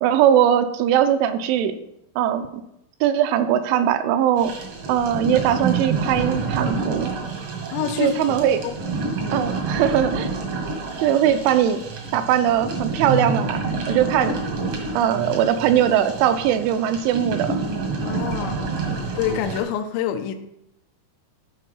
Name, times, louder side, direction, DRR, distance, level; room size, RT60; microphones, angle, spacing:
voice 1, 0.0-1.8 2.2-2.6 3.0-4.5 4.9-7.1 8.0-8.6 9.3-10.3 11.0-11.8 12.1-13.6 13.9-14.4 15.0-17.6, right 10 dB, 80° right, 9 dB, 3.0 m, -20 dB
sound 1, 4.4-19.6, right 4 dB, 65° right, 1.5 m, -28 dB
voice 2, 7.7-8.2 8.6-8.7 18.0-18.6 19.2-20.3, left 9 dB, 85° left, 6 dB, 2.7 m, -26 dB
13.0 x 4.5 x 5.5 m, 0.80 s
omnidirectional pair, 5.6 m